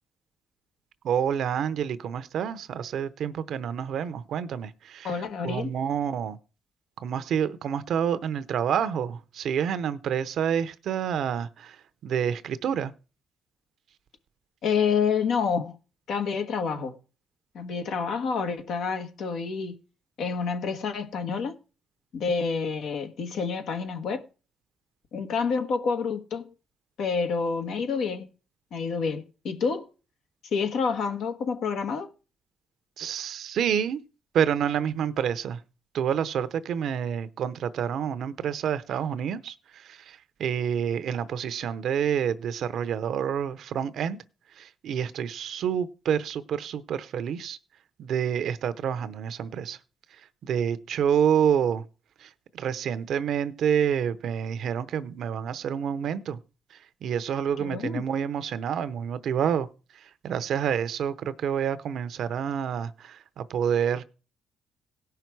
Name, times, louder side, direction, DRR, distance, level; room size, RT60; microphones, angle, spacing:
voice 1, 1.0-5.2 5.4-6.4 7.0-12.9 33.0-34.0 34.3-35.6 35.9-44.2 44.6-47.6 48.0-49.8 50.4-51.9 52.2-56.4 57.0-59.7 59.9-64.0, right 8 dB, 70° right, 0.7 m, -28 dB
voice 2, 5.0-5.7 14.6-15.8 16.1-17.0 17.5-19.8 20.2-21.6 22.1-24.2 25.1-26.5 27.0-28.3 28.7-29.9 30.5-32.1 57.6-58.0, left 5 dB, 75° left, 1.3 m, -28 dB
17.0 x 5.8 x 4.6 m
cardioid pair, 90°, 0 cm